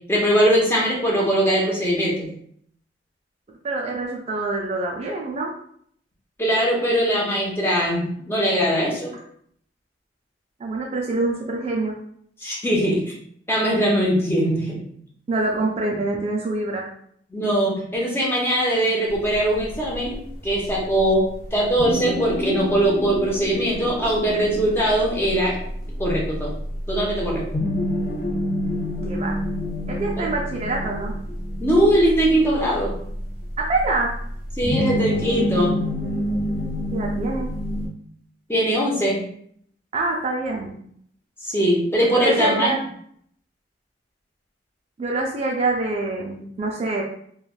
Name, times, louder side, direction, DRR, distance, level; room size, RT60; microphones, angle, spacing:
voice 1, 0.1-2.3 6.4-9.1 12.4-13.1 13.5-14.8 17.3-20.2 20.4-25.6 26.0-26.5 26.9-27.7 31.6-32.9 34.6-35.8 38.5-39.2 41.4-42.7, right 1 dB, 15° left, -4 dB, 0.7 m, -21 dB
voice 2, 3.6-5.5 10.6-11.9 15.3-16.9 29.0-29.4 29.9-31.1 33.6-34.1 36.9-37.5 39.9-40.8 42.0-42.9 45.0-47.0, right 2 dB, 35° right, 0 dB, 0.4 m, -25 dB
sound 1, 19.1-37.9, equal, 50° left, 0.6 m, -28 dB
3.1 x 2.3 x 2.3 m, 0.64 s
head